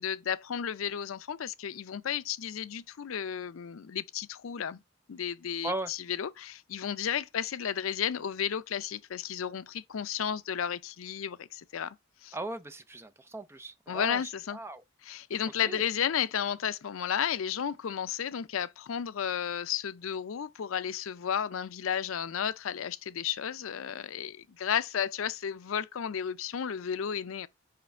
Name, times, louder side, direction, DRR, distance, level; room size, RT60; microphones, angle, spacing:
voice 1, 0.0-4.8 5.1-12.0 12.2-12.4 13.9-14.6 15.0-27.5, left 8 dB, 75° left, 0.5 m, -33 dB
voice 2, 12.3-14.2 14.5-14.8 15.6-15.9, right 2 dB, 10° right, 0.5 m, -37 dB
5.7 x 5.0 x 5.2 m
head